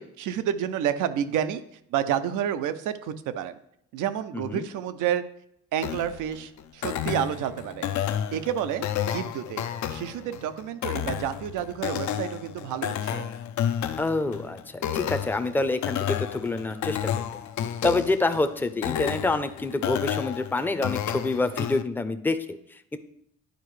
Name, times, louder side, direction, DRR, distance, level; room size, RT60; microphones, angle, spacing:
voice 1, 0.0-1.6 1.9-3.6 3.9-5.2 5.7-7.9 8.3-8.8 9.1-9.6 9.9-13.3, right 10 dB, 90° right, 11 dB, 0.6 m, -29 dB
voice 2, 4.3-4.7 14.0-17.1 17.8-23.0, left 2 dB, 5° left, 9 dB, 0.5 m, -27 dB
sound 1, 5.8-21.8, left 10 dB, 70° left, 0.5 m, -31 dB
10.5 x 4.6 x 3.2 m, 0.74 s
cardioid pair, 90°, 30 cm